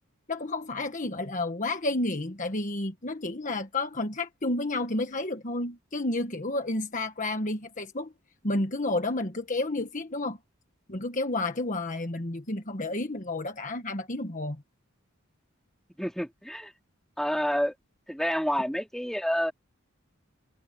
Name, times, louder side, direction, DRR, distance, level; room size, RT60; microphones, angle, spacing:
voice 1, 0.3-8.1 8.4-10.4 10.9-14.6, left 2 dB, 40° left, 1.5 m, -31 dB
voice 2, 16.0-16.7 17.2-17.7 18.1-19.5, equal, ahead, 2.9 m, -28 dB
head